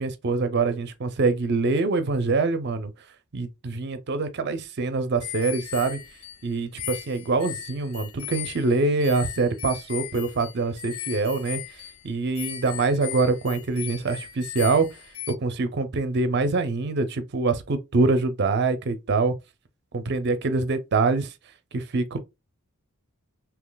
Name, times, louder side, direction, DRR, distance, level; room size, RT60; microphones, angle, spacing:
voice 1, 0.0-2.9 3.3-6.0 6.4-14.9 15.3-19.4 19.9-21.3 21.7-22.2, right 3 dB, 55° right, 0.6 m, -25 dB
sound 1, 5.2-15.3, left 11 dB, 85° left, 0.5 m, -38 dB
3.8 x 2.8 x 2.2 m
head